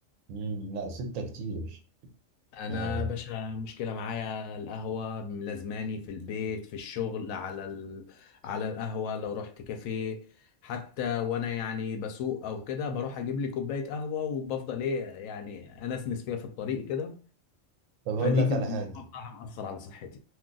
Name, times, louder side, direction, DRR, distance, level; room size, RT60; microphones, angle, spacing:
voice 1, 0.3-1.8 2.7-3.2 18.1-18.9, right 1 dB, 80° right, 1.0 m, -31 dB
voice 2, 2.5-10.2 10.6-17.1 18.2-18.8 19.1-20.2, left 6 dB, 85° left, 1.0 m, -34 dB
2.6 x 2.3 x 3.7 m
omnidirectional pair, 1.4 m